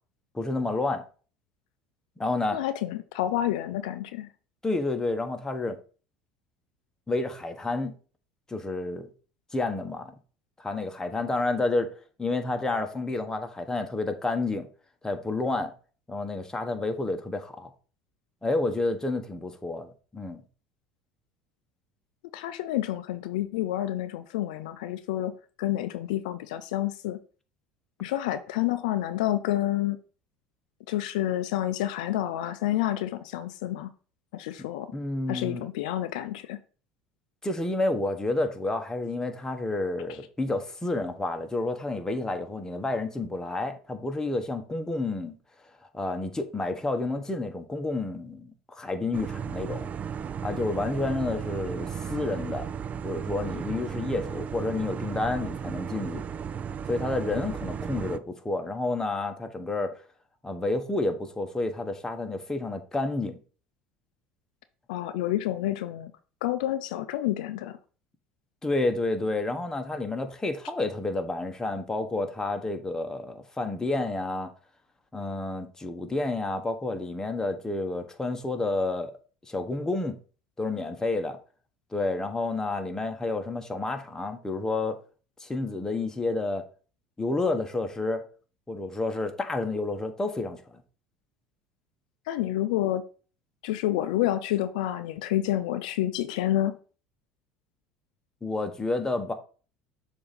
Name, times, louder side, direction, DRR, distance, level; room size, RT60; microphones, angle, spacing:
voice 1, 0.3-1.0 2.2-2.6 4.6-5.8 7.1-7.9 8.5-9.1 9.5-10.1 10.6-11.9 12.2-14.7 15.0-15.7 16.1-17.7 18.4-20.4 34.9-35.6 37.4-45.3 45.9-49.9 50.4-52.7 53.0-56.2 56.9-60.0 60.4-63.4 68.6-74.5 75.1-79.1 79.4-80.2 80.6-81.4 81.9-85.0 85.4-86.6 87.2-88.2 88.7-90.8 98.4-99.3, left 2 dB, 15° left, 1.1 m, -30 dB
voice 2, 2.5-4.3 22.3-27.2 28.0-30.0 30.9-33.9 34.3-34.9 35.3-36.6 64.9-66.1 66.4-67.8 92.3-93.1 93.6-96.8, left 13 dB, 75° left, 0.4 m, -29 dB
sound 1, 49.1-58.2, right 7 dB, 35° right, 0.4 m, -35 dB
6.8 x 2.7 x 5.1 m
hypercardioid pair, 75°, 4 cm